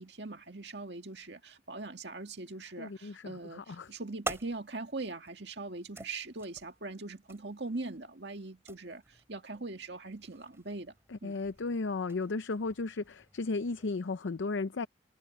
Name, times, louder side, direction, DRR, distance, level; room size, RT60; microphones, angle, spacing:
voice 1, 0.0-10.9 11.2-11.4, right 3 dB, 65° right, 2.0 m, -41 dB
voice 2, 2.8-3.9 11.1-14.9, left 3 dB, 90° left, 0.6 m, -35 dB
sound 1, 3.6-13.9, right 2 dB, 15° right, 3.7 m, -48 dB
head